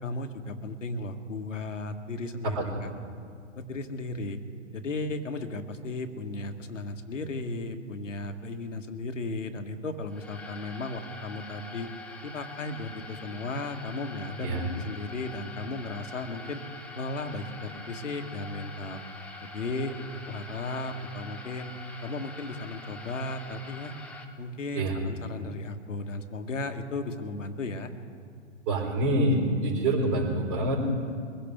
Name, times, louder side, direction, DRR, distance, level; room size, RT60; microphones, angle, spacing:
voice 1, 0.0-2.9 3.5-4.4 4.7-11.9 12.2-16.6 17.0-19.0 19.4-20.0 20.3-21.7 22.0-23.9 24.4-27.9, left 2 dB, 80° left, 6 dB, 1.5 m, -35 dB
voice 2, 2.5-2.8 14.4-14.7 24.7-25.0 28.7-30.8, right 1 dB, 40° right, 0 dB, 4.8 m, -26 dB
sound 1, 10.1-24.2, left 3 dB, 5° left, 0.9 m, -44 dB
23.0 x 16.0 x 3.5 m, 2.2 s
figure-of-eight pair, 125°, 37 cm